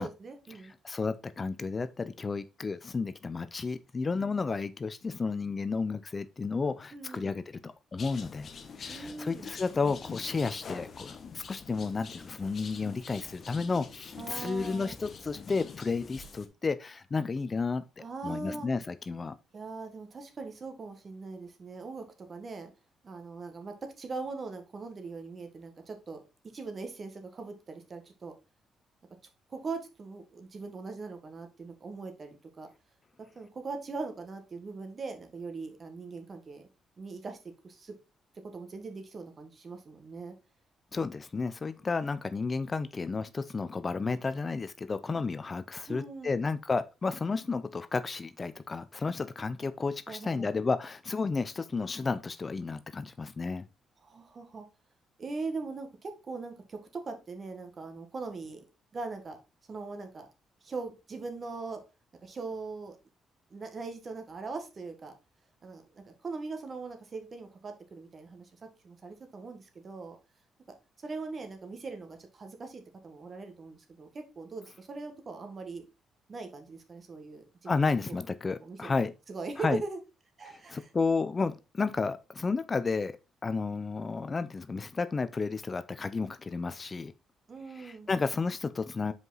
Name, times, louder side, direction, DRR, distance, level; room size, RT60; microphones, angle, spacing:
voice 1, 0.0-0.7 6.9-7.3 8.9-9.5 14.2-14.9 18.0-18.7 19.5-22.7 23.0-26.2 26.5-28.3 29.5-32.7 33.3-36.7 37.0-37.4 37.6-37.9 38.5-40.3 45.9-46.4 50.1-50.5 54.0-54.6 55.2-56.8 57.0-58.6 58.9-59.4 59.7-60.3 60.6-61.8 62.2-63.0 63.5-65.1 65.6-68.5 68.8-70.2 71.0-75.9 76.3-78.2 78.6-78.9 79.3-80.0 80.4-80.9 87.5-88.1, right 4 dB, 40° right, 1.5 m, -41 dB
voice 2, 0.8-8.5 8.8-17.8 18.2-19.3 40.9-53.7 77.7-79.1 79.6-79.8 80.5-87.1 87.8-89.1, left 4 dB, 30° left, 0.5 m, -32 dB
sound 1, 8.0-16.5, left 5 dB, 50° left, 1.0 m, -45 dB
5.2 x 4.8 x 3.9 m
cardioid pair, 90°, 0 cm